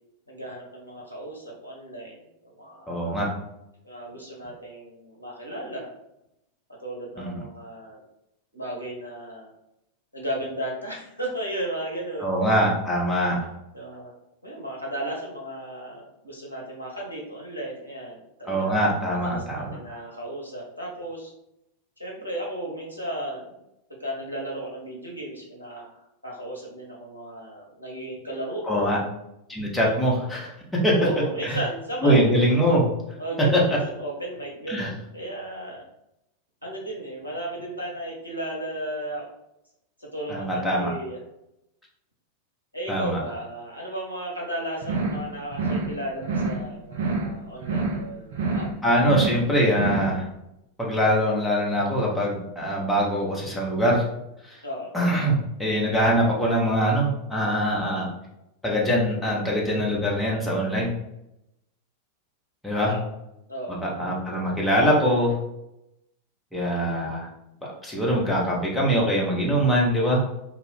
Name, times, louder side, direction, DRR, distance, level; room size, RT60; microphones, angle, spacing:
voice 1, 0.3-3.2 3.8-5.9 6.8-8.0 8.5-9.5 10.1-12.3 13.7-14.2 14.4-21.3 22.0-23.6 24.0-29.0 29.8-30.0 31.0-32.2 32.5-32.6 33.2-35.8 36.6-39.3 40.0-41.2 42.7-48.7 54.6-54.9 62.8-63.1 63.5-63.8, right 1 dB, 90° right, -1 dB, 0.9 m, -34 dB
voice 2, 2.9-3.3 7.2-7.4 12.2-13.4 18.5-19.8 28.7-29.0 29.5-30.5 30.8-30.9 31.4-31.6 32.0-32.8 33.5-33.6 34.7-34.9 40.3-40.9 42.9-43.2 48.8-50.2 50.8-54.0 54.4-54.6 54.9-58.1 58.6-60.9 62.6-62.9 63.8-65.3 66.5-67.3 67.8-70.2, equal, 5° left, -4 dB, 1.0 m, -23 dB
sound 1, 44.8-45.3 45.5-45.9 46.2-46.7 46.9-47.4 47.6-48.1 48.3-48.7 49.0-49.5 49.7-50.1, right 3 dB, 60° right, 0.5 m, -27 dB
2.8 x 2.4 x 3.5 m, 0.84 s
figure-of-eight pair, 90°, 0 cm